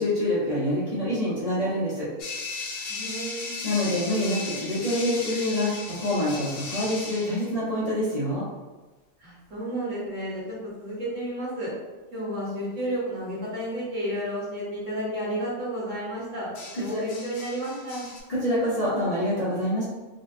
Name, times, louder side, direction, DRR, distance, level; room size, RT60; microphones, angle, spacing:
voice 1, 0.0-2.1 3.6-8.4 16.7-17.0 18.3-19.8, left 1 dB, 30° left, -10 dB, 0.9 m, -26 dB
sound 1, 2.2-7.5 11.0-11.3 16.5-18.2, left 3 dB, 70° left, 0.9 m, -36 dB
voice 2, 2.9-3.5 9.2-11.7 12.1-18.0, equal, 65° right, -7 dB, 1.6 m, -32 dB
4.1 x 2.3 x 2.6 m, 1.2 s
omnidirectional pair, 1.4 m